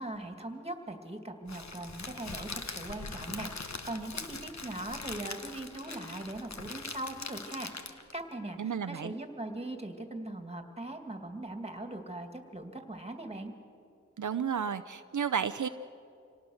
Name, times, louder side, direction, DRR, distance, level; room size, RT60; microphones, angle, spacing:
voice 1, 0.0-13.5, right 1 dB, 20° right, 5 dB, 2.2 m, -40 dB
Crackle, 1.5-8.2, left 3 dB, 65° left, 1.2 m, -42 dB
voice 2, 8.6-9.1 14.2-15.7, right 7 dB, 75° right, 9 dB, 0.6 m, -32 dB
26.0 x 18.0 x 6.4 m, 2.6 s
wide cardioid pair, 60°, 30 cm